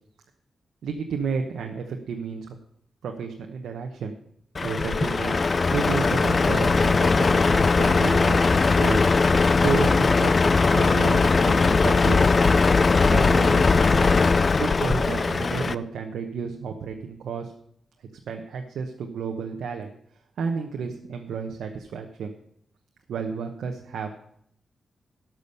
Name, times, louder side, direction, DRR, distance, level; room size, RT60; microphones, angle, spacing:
voice 1, 0.8-2.6 3.0-4.2 4.6-9.0 9.6-12.2 13.1-14.1 14.6-17.5 18.3-19.9 20.4-22.3 23.1-24.1, right 6 dB, 85° right, 3 dB, 1.0 m, -32 dB
Truck, 4.5-15.7, left 4 dB, 40° left, 0.5 m, -20 dB
12.5 x 6.2 x 6.8 m, 0.69 s
cardioid pair, 75°, 0 cm